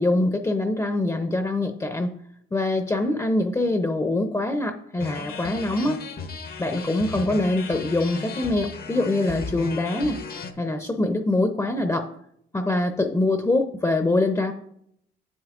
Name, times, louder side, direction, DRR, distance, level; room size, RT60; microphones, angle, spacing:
voice 1, 0.0-2.1 2.5-6.0 6.6-10.2 10.6-12.1 12.5-14.5, left 2 dB, 15° left, 6 dB, 0.6 m, -24 dB
sound 1, 5.0-10.5, left 4 dB, 50° left, 0.8 m, -35 dB
10.0 x 7.4 x 2.4 m, 0.71 s
cardioid pair, 90°, 20 cm